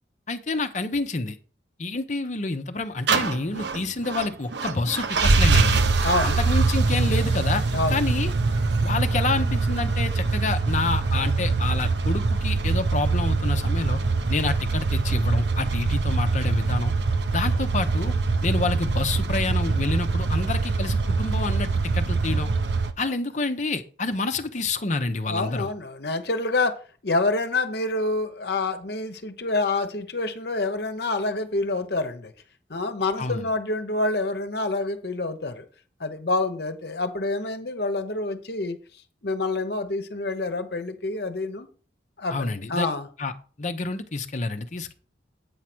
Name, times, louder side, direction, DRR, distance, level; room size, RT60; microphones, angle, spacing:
voice 1, 0.3-1.4 1.8-5.8 6.2-8.3 8.8-14.0 14.3-16.9 17.3-18.1 18.4-22.5 23.0-25.7 33.2-33.5 42.3-42.9 43.2-43.3 43.6-44.9, left 3 dB, 40° left, 0.8 m, -28 dB
sound 1, 3.1-22.9, right 3 dB, 70° right, 0.8 m, -23 dB
voice 2, 6.0-6.4 7.7-8.0 25.3-26.7 27.0-32.3 32.7-35.7 36.0-38.8 39.2-41.7 42.2-43.1, left 2 dB, 60° left, 1.0 m, -27 dB
8.7 x 4.9 x 6.0 m
head